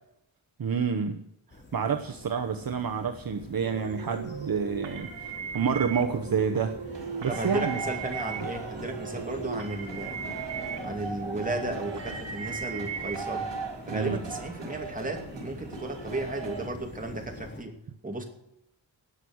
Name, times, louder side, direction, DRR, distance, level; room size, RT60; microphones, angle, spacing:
voice 1, 0.6-1.3 1.7-7.8 13.9-14.2, right 6 dB, 50° right, 5 dB, 1.0 m, -29 dB
sound 1, 1.5-17.6, left 2 dB, 25° left, 2.4 m, -45 dB
sound 2, 3.6-13.2, right 6 dB, 85° right, 2.2 m, -38 dB
sound 3, 6.9-16.7, right 4 dB, 70° right, 4.1 m, -40 dB
voice 2, 7.3-10.4 10.8-13.5 13.9-18.2, right 2 dB, 20° right, 2 dB, 2.6 m, -34 dB
18.5 x 6.3 x 7.9 m, 0.81 s
wide cardioid pair, 155°, 45 cm